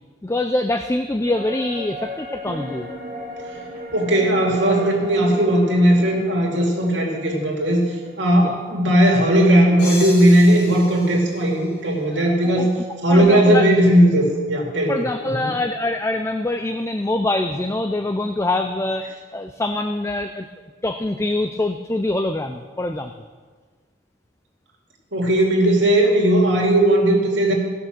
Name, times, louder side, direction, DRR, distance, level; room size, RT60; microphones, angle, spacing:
voice 1, 0.2-2.9 8.4-8.5 12.2-13.7 14.9-20.4 20.8-23.1, left 2 dB, 15° left, 7 dB, 0.4 m, -24 dB
sound 1, 1.3-10.8 11.1-11.2, equal, 45° right, 1.3 m, -37 dB
voice 2, 3.9-7.9 8.2-12.7 13.0-15.5 25.1-27.5, right 1 dB, 70° right, -1 dB, 2.6 m, -17 dB
sound 2, 9.8-12.5, left 2 dB, 60° left, 3.1 m, -35 dB
16.5 x 6.5 x 6.1 m, 1.5 s
head